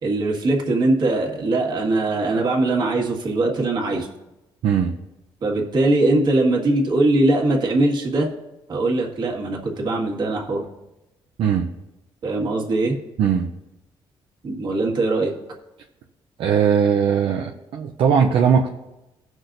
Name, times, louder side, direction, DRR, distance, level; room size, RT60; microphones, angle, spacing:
voice 1, 0.0-4.1 5.4-8.3 8.7-10.6 12.2-13.0 14.4-15.3, right 2 dB, 50° right, 0 dB, 1.8 m, -21 dB
voice 2, 4.6-4.9 11.4-11.7 13.2-13.5 16.4-18.7, right 7 dB, 75° right, 2 dB, 0.6 m, -19 dB
17.5 x 6.2 x 2.6 m, 0.99 s
cardioid pair, 130°, 9 cm